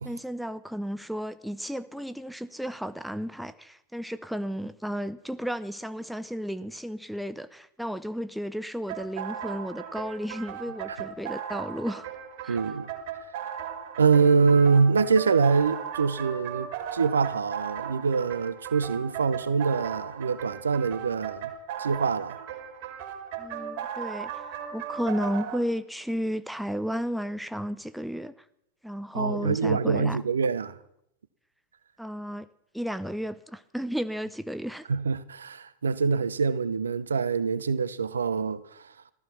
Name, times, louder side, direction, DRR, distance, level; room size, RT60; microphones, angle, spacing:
voice 1, 0.0-12.1 12.4-12.6 23.4-24.4 24.7-28.3 28.8-30.2 32.0-32.5 32.7-34.9, equal, ahead, 0.6 m, -33 dB
sound 1, 8.9-25.6, right 8 dB, 45° right, 2.6 m, -37 dB
voice 2, 12.5-12.9 14.0-21.5 21.8-22.4 29.1-30.7 34.9-38.6, right 5 dB, 70° right, 0.8 m, -24 dB
15.5 x 14.0 x 5.8 m
figure-of-eight pair, 90°, 0 cm